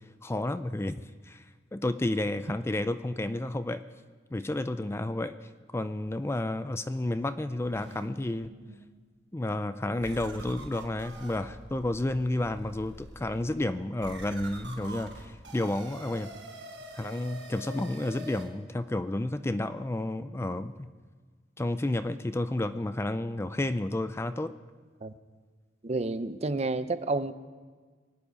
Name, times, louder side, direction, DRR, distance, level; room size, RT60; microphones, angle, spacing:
voice 1, 0.2-3.8 4.3-8.5 9.3-16.3 16.9-20.9 21.6-24.5, left 1 dB, 15° left, 11 dB, 0.4 m, -31 dB
sound 1, 7.6-8.8 9.4-9.5 10.0-18.5, right 1 dB, 80° right, 4.5 m, -46 dB
voice 2, 25.8-27.3, right 2 dB, 35° right, 12 dB, 0.6 m, -30 dB
24.0 x 9.7 x 5.1 m, 1.5 s
head